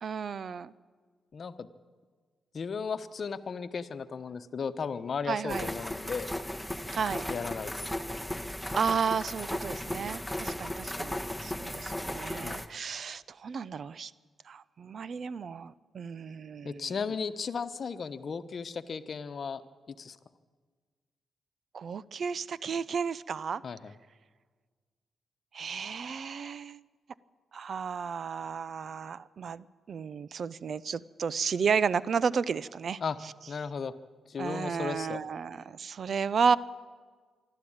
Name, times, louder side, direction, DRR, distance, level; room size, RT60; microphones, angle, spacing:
voice 1, 0.0-0.7 5.3-5.7 6.9-7.3 8.7-14.1 14.5-16.8 21.7-23.6 25.5-26.8 27.5-33.0 34.4-36.6, right 6 dB, 60° right, 19 dB, 0.6 m, -32 dB
voice 2, 1.3-1.7 2.5-6.3 7.3-7.9 12.4-12.6 16.6-19.6 19.9-20.2 23.6-23.9 33.0-33.2 33.5-33.9 34.3-35.2, left 5 dB, 55° left, 12 dB, 1.0 m, -35 dB
sound 1, 5.5-12.7, left 1 dB, ahead, 1.4 m, -36 dB
24.5 x 12.5 x 8.8 m, 1.5 s
supercardioid pair, 55°, 0 cm